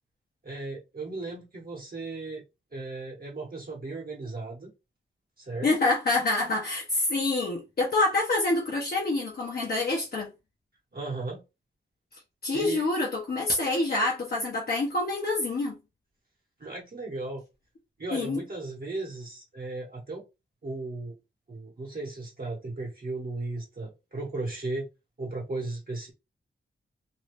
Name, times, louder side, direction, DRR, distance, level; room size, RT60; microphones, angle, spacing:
voice 1, 0.4-2.4 2.7-4.7 5.4-5.7 10.9-11.4 12.5-12.9 16.6-17.4 18.0-20.2 20.6-21.2 21.5-24.9 25.2-26.1, right 3 dB, 50° right, 1.0 m, -36 dB
voice 2, 5.6-10.3 12.4-15.8 18.1-18.4, left 2 dB, 50° left, 0.7 m, -26 dB
2.6 x 2.3 x 3.3 m
wide cardioid pair, 110°, 20 cm